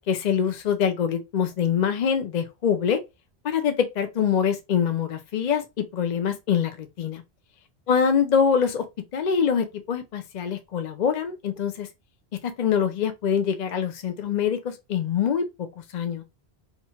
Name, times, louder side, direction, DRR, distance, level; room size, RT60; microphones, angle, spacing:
voice 1, 0.0-3.0 3.4-7.2 7.9-8.8 9.1-11.9 12.4-15.7 15.9-16.2, left 7 dB, 55° left, 0.6 m, -24 dB
2.9 x 2.4 x 4.2 m
omnidirectional pair, 1.1 m